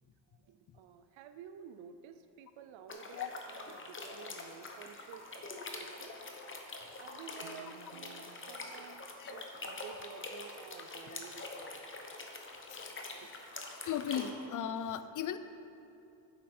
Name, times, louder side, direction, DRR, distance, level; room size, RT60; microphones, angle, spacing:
voice 1, 0.3-6.1 7.0-11.9 13.1-13.3, right 8 dB, 90° right, 9 dB, 0.6 m, -52 dB
sound 1, 2.9-14.3, left 3 dB, 25° left, 0.9 m, -45 dB
voice 2, 12.5-13.0 13.9-15.4, left 9 dB, 45° left, 12 dB, 0.5 m, -37 dB
8.8 x 7.5 x 4.2 m, 2.7 s
cardioid pair, 120°, 45 cm